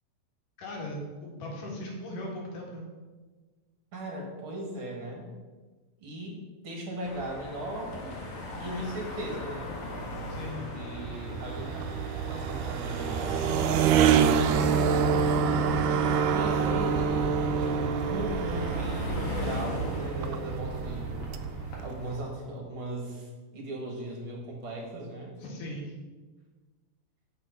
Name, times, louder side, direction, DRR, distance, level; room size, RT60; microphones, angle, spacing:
voice 1, 0.6-2.9 10.3-10.8 15.1-15.8 25.4-25.9, left 1 dB, 90° left, -2 dB, 3.6 m, -39 dB
voice 2, 3.9-5.3 6.0-6.3 6.6-8.1 8.6-9.7 10.4-11.9 12.3-14.8 16.3-21.2 21.8-25.3, right 1 dB, 45° right, 0 dB, 2.4 m, -38 dB
sound 1, 7.0-22.2, left 1 dB, 65° left, 3.0 m, -38 dB
sound 2, 10.7-22.3, right 7 dB, 85° right, 2.1 m, -27 dB
9.0 x 6.5 x 5.4 m, 1.3 s
omnidirectional pair, 3.6 m